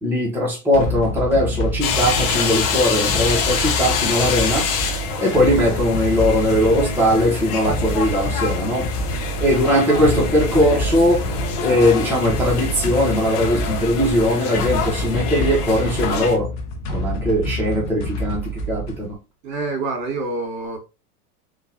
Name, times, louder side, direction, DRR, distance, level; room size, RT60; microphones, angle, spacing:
voice 1, 0.0-4.7 5.2-8.9 9.4-11.2 11.6-16.5 16.9-19.2, equal, 5° right, 1.1 m, -20 dB
sound 1, 0.7-19.1, equal, 45° left, 0.9 m, -27 dB
sound 2, 1.8-16.4, left 6 dB, 70° left, 1.2 m, -26 dB
voice 2, 19.4-20.8, right 3 dB, 55° right, 1.9 m, -26 dB
3.8 x 2.6 x 2.8 m
hypercardioid pair, 120°, 46 cm